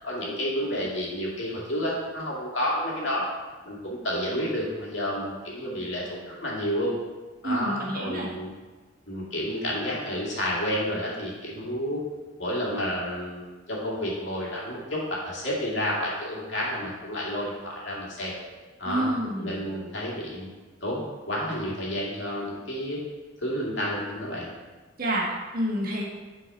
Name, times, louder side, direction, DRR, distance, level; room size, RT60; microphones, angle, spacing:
voice 1, 0.0-3.3 3.6-6.9 7.4-8.5 9.1-12.0 12.4-18.3 18.8-20.5 20.8-23.0 23.4-24.5, equal, 60° left, -4 dB, 2.3 m, -30 dB
voice 2, 7.4-8.3 18.9-19.5 25.0-26.0, right 1 dB, 45° right, -3 dB, 1.6 m, -28 dB
10.0 x 4.6 x 4.4 m, 1.3 s
head